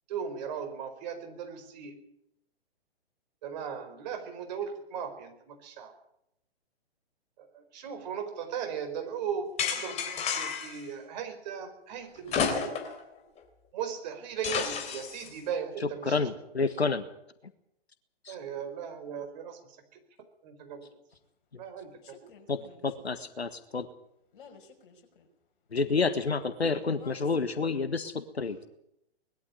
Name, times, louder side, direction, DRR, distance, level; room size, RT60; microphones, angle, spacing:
voice 1, 0.1-2.0 3.4-5.9 7.4-12.8 13.7-16.3 18.3-19.8 20.4-20.9 21.6-22.2, right 7 dB, 45° right, 6 dB, 4.7 m, -37 dB
sound 1, 9.6-10.8 12.3-13.0 13.4-13.5 14.4-15.3, left 6 dB, 20° left, 3.4 m, -31 dB
voice 2, 16.1-17.0 18.3-18.4 22.5-23.9 25.7-28.7, left 4 dB, 80° left, 11 dB, 1.7 m, -29 dB
voice 3, 22.0-22.9 24.3-25.3 27.0-27.2, left 5 dB, 55° left, 4 dB, 5.7 m, -53 dB
20.5 x 13.0 x 9.8 m, 0.79 s
figure-of-eight pair, 120°, 31 cm